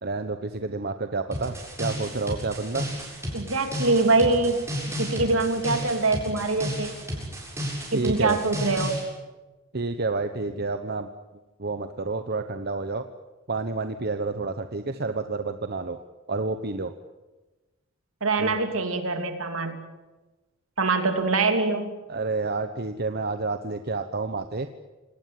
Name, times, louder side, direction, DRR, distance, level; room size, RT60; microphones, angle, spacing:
voice 1, 0.0-2.9 7.9-8.4 9.7-11.1 11.6-13.0 13.5-16.0 16.3-16.9 18.4-18.6 22.1-24.7, right 3 dB, 50° right, 9 dB, 1.1 m, -29 dB
sound 1, 1.3-9.0, equal, 15° right, 7.8 m, -33 dB
voice 2, 3.3-4.7 5.0-6.9 7.9-9.1 18.2-19.8 20.8-21.9, right 3 dB, 70° right, 7 dB, 3.2 m, -24 dB
27.5 x 19.0 x 9.4 m, 1.2 s
head